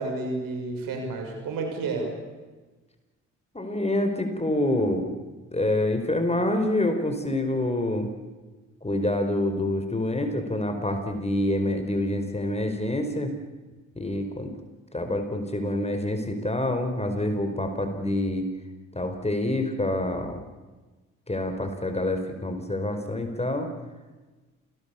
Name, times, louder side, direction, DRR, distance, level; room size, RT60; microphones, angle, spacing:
voice 1, 0.0-2.1, right 3 dB, 70° right, 3 dB, 6.4 m, -30 dB
voice 2, 3.5-5.1 5.5-8.1 8.8-13.3 14.0-14.5 14.9-18.5 18.9-20.4 21.3-23.7, left 1 dB, 20° left, 6 dB, 4.7 m, -27 dB
28.0 x 18.5 x 7.1 m, 1.2 s
hypercardioid pair, 40°, 35 cm